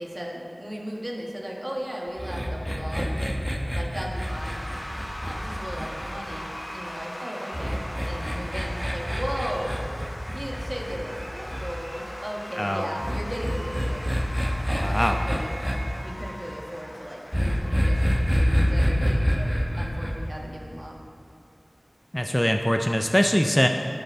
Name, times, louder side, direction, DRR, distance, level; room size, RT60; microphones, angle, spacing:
voice 1, 0.0-3.3 3.7-4.6 5.2-7.8 8.0-9.8 10.3-14.1 14.7-15.5 16.0-18.1 18.3-21.0, equal, 40° right, -2 dB, 1.4 m, -36 dB
sound 1, 2.2-6.6 7.5-11.7 13.0-15.8 17.3-20.1, equal, 5° right, 1.1 m, -26 dB
Cheering / Applause / Crowd, 4.1-19.7, equal, 60° left, 2.5 m, -40 dB
sound 2, 11.8-17.1 17.4-18.5, equal, 40° left, 1.4 m, -46 dB
voice 2, 12.6-12.9 14.8-15.2 22.1-23.7, equal, 15° left, 4 dB, 0.4 m, -23 dB
13.5 x 5.4 x 4.6 m, 2.5 s
wide cardioid pair, 45°, 0 cm